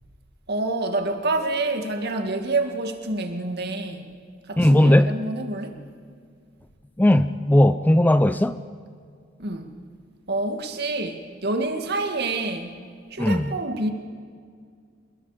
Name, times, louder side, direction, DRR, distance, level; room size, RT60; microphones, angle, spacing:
voice 1, 0.5-4.1 4.5-5.8 9.4-9.7 10.3-12.8 13.1-13.9, right 2 dB, 55° right, 2.0 m, -27 dB
voice 2, 4.6-5.2 7.0-8.6 13.2-13.5, left 1 dB, 10° left, 0.4 m, -17 dB
27.5 x 21.5 x 5.0 m
head